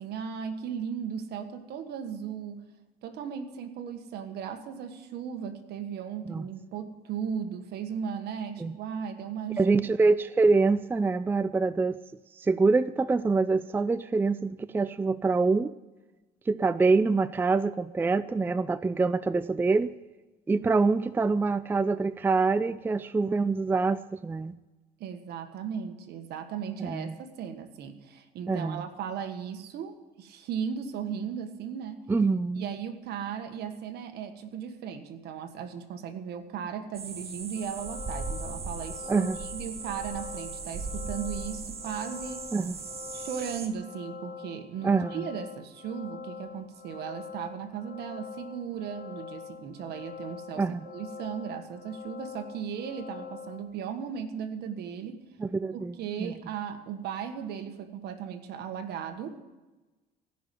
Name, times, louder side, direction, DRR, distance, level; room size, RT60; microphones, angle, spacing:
voice 1, 0.0-2.6 3.0-9.8 25.0-32.0 32.5-42.5 43.1-55.2 55.7-59.4, right 7 dB, 75° right, 1.5 m, -36 dB
voice 2, 9.6-12.0 12.4-15.7 16.5-19.9 20.5-24.6 26.8-27.2 28.5-28.9 32.1-32.7 39.1-39.4 42.5-42.8 44.8-45.2 50.6-50.8 55.4-55.9 56.2-56.3, right 4 dB, 10° right, 0.3 m, -25 dB
sound 1, 36.9-43.7, right 4 dB, 35° right, 1.5 m, -38 dB
sound 2, 37.5-53.6, left 7 dB, 90° left, 3.0 m, -44 dB
16.0 x 5.8 x 9.4 m
cardioid pair, 110°, 17 cm